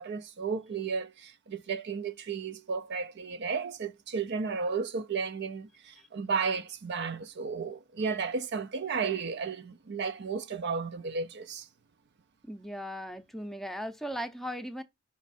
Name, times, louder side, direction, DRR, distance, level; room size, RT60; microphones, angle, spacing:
voice 1, 0.0-11.7, right 5 dB, 55° right, 0.5 m, -33 dB
voice 2, 12.5-14.8, equal, ahead, 0.6 m, -38 dB
6.1 x 4.6 x 4.1 m
head